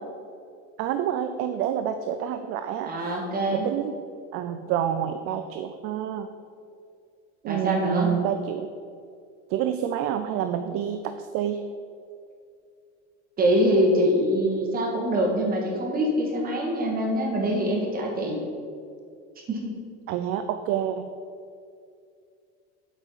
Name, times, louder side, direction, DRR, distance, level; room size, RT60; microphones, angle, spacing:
voice 1, 0.8-2.9 3.5-4.0 4.3-6.3 7.4-8.7 9.5-11.6 20.1-21.1, right 9 dB, 40° right, 8 dB, 0.5 m, -28 dB
voice 2, 2.8-3.7 7.5-8.2 13.4-18.4 19.5-19.7, equal, 25° right, -1 dB, 2.0 m, -24 dB
8.2 x 5.0 x 7.4 m, 2.3 s
supercardioid pair, 145°, 34 cm